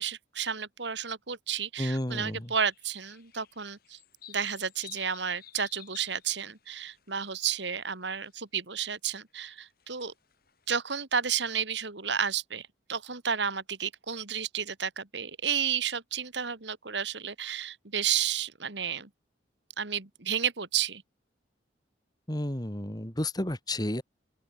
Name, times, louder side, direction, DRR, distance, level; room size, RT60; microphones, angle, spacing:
voice 1, 0.0-4.0 4.3-10.1 10.7-19.1 19.8-21.0, right 7 dB, 70° right, 2.3 m, -32 dB
voice 2, 1.8-2.5 22.3-24.0, left 1 dB, 20° left, 2.7 m, -31 dB
sound 1, 2.4-7.6 7.9-8.3 9.5-10.7, left 11 dB, 55° left, 4.1 m, -52 dB
open air
head